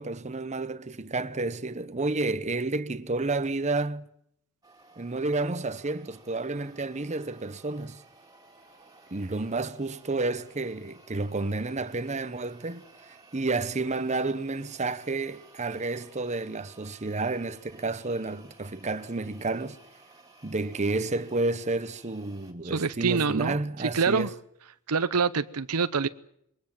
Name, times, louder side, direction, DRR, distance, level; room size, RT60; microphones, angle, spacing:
voice 1, 0.0-4.1 5.0-8.0 9.1-12.9 13.3-19.8 20.4-24.3, right 3 dB, 30° right, 1.0 m, -30 dB
sound 1, 4.6-22.5, right 3 dB, 15° right, 2.7 m, -56 dB
voice 2, 22.6-24.3 24.9-26.1, right 5 dB, 80° right, 0.8 m, -26 dB
23.0 x 19.5 x 7.6 m
head